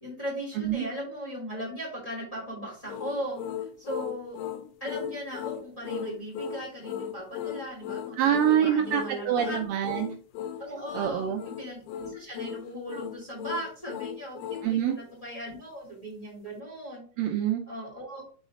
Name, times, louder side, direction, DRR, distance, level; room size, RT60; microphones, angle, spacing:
voice 1, 0.0-4.4 4.8-9.6 10.6-17.0 17.7-18.2, equal, 10° left, -5 dB, 2.1 m, -38 dB
voice 2, 0.6-0.9 8.2-10.1 10.9-11.4 14.6-15.0 17.2-17.6, right 9 dB, 80° right, 3 dB, 2.1 m, -25 dB
sound 1, 2.9-14.7, left 9 dB, 80° left, 2.6 m, -37 dB
6.3 x 4.1 x 3.7 m, 0.41 s
omnidirectional pair, 4.4 m